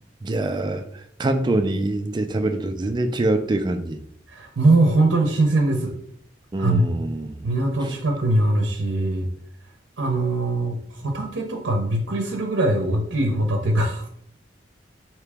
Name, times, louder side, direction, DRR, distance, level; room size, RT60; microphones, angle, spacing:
voice 1, 0.2-0.8 1.2-4.0 6.5-7.5 7.8-8.0, right 2 dB, 25° right, 8 dB, 0.3 m, -24 dB
voice 2, 4.3-5.9 6.6-6.9 7.4-9.3 10.0-14.1, right 2 dB, 80° right, 2 dB, 0.6 m, -21 dB
4.6 x 2.9 x 3.4 m, 0.67 s
head